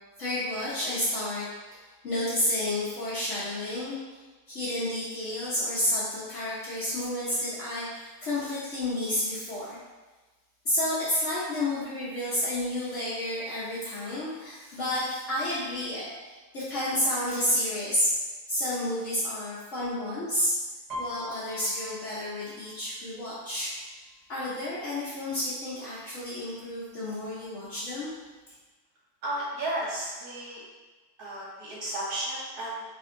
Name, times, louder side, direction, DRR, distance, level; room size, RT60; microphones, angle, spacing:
voice 1, 0.2-1.4 1.7-3.9 4.5-9.8 10.6-18.1 18.5-20.5 21.0-23.7 24.3-28.1, left 1 dB, 55° left, -11 dB, 1.3 m, -30 dB
Piano, 20.9-24.5 24.9-25.3 25.6-26.3 26.9-27.0 27.2-28.2 28.6-28.7, left 1 dB, 35° right, 0.9 m, -42 dB
voice 2, 29.2-30.6 31.2-32.8, right 1 dB, 80° right, -7 dB, 1.6 m, -33 dB
3.5 x 3.5 x 3.7 m, 1.2 s
omnidirectional pair, 1.6 m